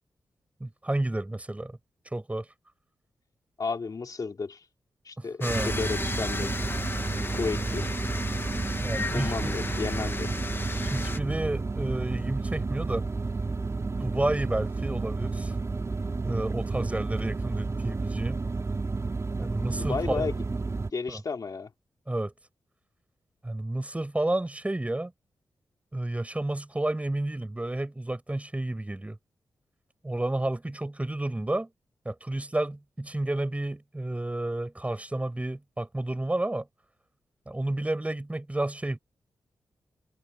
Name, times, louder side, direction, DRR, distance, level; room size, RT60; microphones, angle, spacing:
voice 1, 0.6-1.8 2.1-2.5 5.2-5.7 8.8-9.6 10.8-13.0 14.0-15.5 16.2-18.4 19.4-20.3 21.1-21.2 22.1-22.3 23.4-25.1 25.9-29.2 30.0-31.7 32.0-36.7 37.5-39.0, right 1 dB, 15° right, 5.9 m, -31 dB
voice 2, 3.6-4.6 5.0-6.6 7.3-7.9 9.1-10.4 19.8-20.3 20.9-21.7, left 4 dB, 50° left, 2.9 m, -33 dB
sound 1, 5.4-11.2, left 3 dB, 30° left, 1.6 m, -34 dB
sound 2, 5.5-20.9, right 3 dB, 40° right, 3.1 m, -31 dB
cardioid pair, 70°, 8 cm